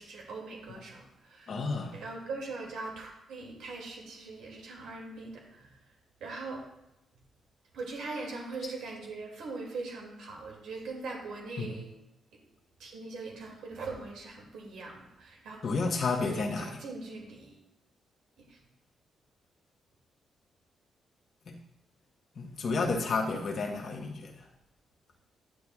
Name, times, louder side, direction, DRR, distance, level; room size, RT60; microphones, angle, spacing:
voice 1, 0.0-1.5 1.9-5.7 6.2-6.6 7.7-11.9 12.8-15.6 16.2-17.6 18.5-18.6, right 3 dB, 80° right, -1 dB, 2.3 m, -41 dB
voice 2, 1.5-2.1 11.6-11.7 15.6-16.9 21.5-21.6 22.3-24.5, left 3 dB, 60° left, 2 dB, 1.1 m, -31 dB
10.0 x 9.6 x 2.4 m, 0.91 s
supercardioid pair, 60°, 0 cm